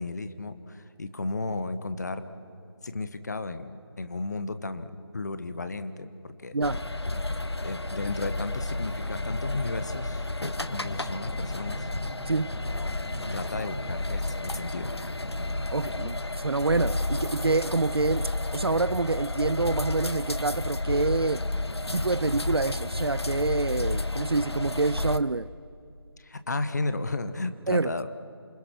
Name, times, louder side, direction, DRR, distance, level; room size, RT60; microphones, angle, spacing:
voice 1, 0.0-2.2 2.8-6.5 7.6-10.2 10.7-11.9 13.3-14.9 26.2-28.1, left 3 dB, 40° left, 1.3 m, -34 dB
voice 2, 6.5-6.8 12.3-12.5 15.7-21.5 21.9-25.5 27.7-27.9, right 3 dB, 70° right, 0.5 m, -27 dB
sound 1, 6.6-25.2, left 2 dB, 80° left, 1.1 m, -31 dB
Drum, 10.7-16.2, equal, 20° left, 2.7 m, -43 dB
28.0 x 26.0 x 5.9 m
figure-of-eight pair, 160°, 13 cm